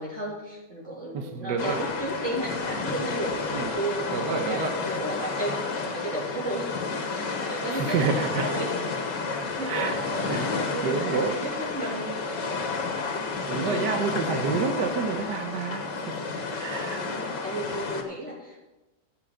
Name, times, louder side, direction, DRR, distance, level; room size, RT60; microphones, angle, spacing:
voice 1, 0.0-6.7 7.1-12.4 13.5-13.9 16.8-18.6, right 1 dB, 40° right, -8 dB, 3.2 m, -34 dB
voice 2, 1.1-1.8 3.5-3.7 4.1-4.7 7.7-8.4 9.7-9.9 10.2-10.5 10.8-11.3 13.5-15.9 16.5-17.1, right 5 dB, 75° right, 4 dB, 1.6 m, -28 dB
sound 1, 1.6-18.0, left 4 dB, 80° left, 2.0 m, -31 dB
16.5 x 7.8 x 3.8 m, 1.1 s
omnidirectional pair, 1.9 m